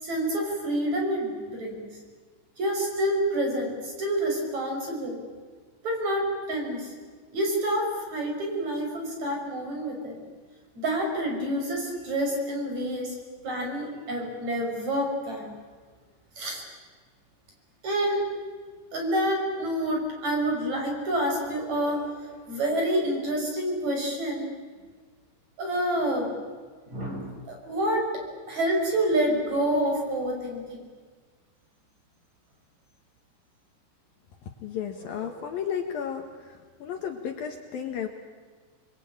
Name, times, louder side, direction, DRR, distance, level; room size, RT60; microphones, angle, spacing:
voice 1, 0.0-1.9 2.6-5.2 5.8-6.9 7.3-10.2 10.7-13.1 13.4-15.5 16.4-16.6 17.8-18.2 18.9-24.5 25.6-26.3 26.9-28.0 28.5-30.9 35.0-35.5, right 1 dB, 40° right, 1 dB, 6.7 m, -28 dB
voice 2, 34.6-36.2 36.8-38.1, left 8 dB, 65° left, 5 dB, 2.8 m, -33 dB
28.5 x 21.5 x 8.9 m, 1.5 s
omnidirectional pair, 5.2 m